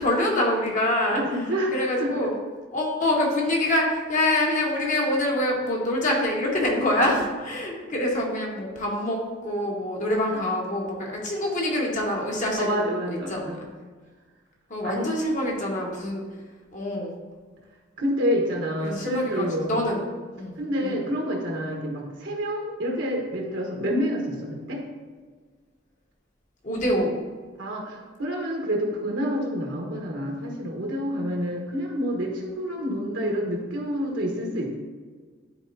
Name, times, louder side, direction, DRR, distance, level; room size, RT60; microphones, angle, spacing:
voice 1, 0.0-1.4 1.7-2.3 2.7-13.7 14.7-16.2 16.7-17.1 18.8-20.0 20.3-20.5 20.8-21.0 26.6-27.1, left 1 dB, 40° left, -2 dB, 1.4 m, -25 dB
voice 2, 1.1-2.1 10.3-10.4 12.6-13.6 14.8-15.1 18.0-19.7 20.6-24.8 27.6-34.8, equal, 70° right, -1 dB, 1.2 m, -28 dB
11.0 x 4.4 x 2.7 m, 1.5 s
head